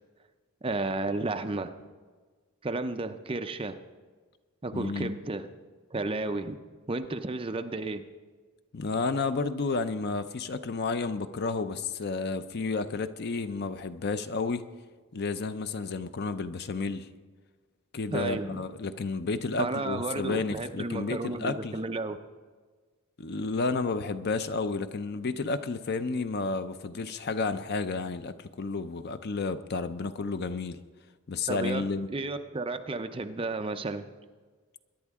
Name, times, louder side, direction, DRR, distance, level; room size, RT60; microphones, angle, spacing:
voice 1, 0.6-1.7 2.6-3.8 4.6-5.5 5.9-6.6 6.9-8.1 18.1-18.6 19.6-22.2 31.5-34.1, right 2 dB, 25° right, 8 dB, 0.5 m, -32 dB
voice 2, 4.7-5.1 8.7-14.6 15.1-17.1 17.9-21.8 23.2-30.8 31.3-32.1, left 4 dB, 45° left, 11 dB, 0.5 m, -31 dB
22.0 x 10.5 x 3.6 m, 1.5 s
head